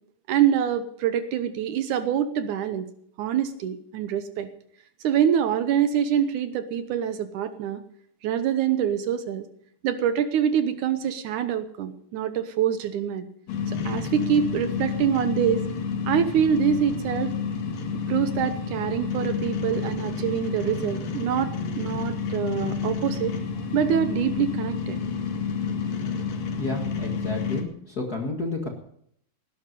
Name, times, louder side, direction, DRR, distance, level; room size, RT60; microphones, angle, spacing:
voice 1, 0.3-2.9 3.2-4.5 5.0-7.8 8.2-9.5 9.8-13.3 13.7-15.7 16.1-17.4 18.1-23.4 23.7-25.0, right 9 dB, 70° right, 10 dB, 2.2 m, -25 dB
sound 1, 13.5-27.6, left 5 dB, 80° left, 3.6 m, -29 dB
voice 2, 26.6-27.7 28.0-28.7, left 2 dB, 35° left, 2 dB, 1.7 m, -30 dB
18.5 x 11.0 x 5.3 m, 0.67 s
omnidirectional pair, 3.9 m